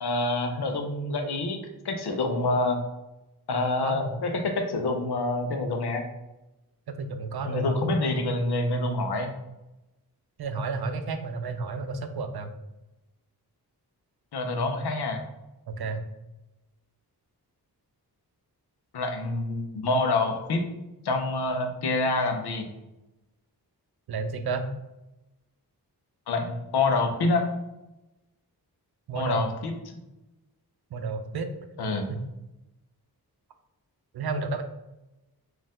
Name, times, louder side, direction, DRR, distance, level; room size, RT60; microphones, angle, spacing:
voice 1, 0.0-1.6 1.8-2.8 3.5-6.1 7.4-9.3 14.3-15.2 18.9-20.7 21.0-22.7 26.3-27.5 29.1-30.0 31.8-32.1, left 2 dB, 75° left, 4 dB, 0.7 m, -27 dB
voice 2, 3.8-4.2 6.9-7.8 10.4-12.5 15.7-16.0 24.1-24.6 29.1-29.4 30.9-31.5 32.1-32.2 34.1-34.6, right 4 dB, 70° right, 8 dB, 0.5 m, -31 dB
4.2 x 2.5 x 3.6 m, 0.98 s
wide cardioid pair, 120°, 39 cm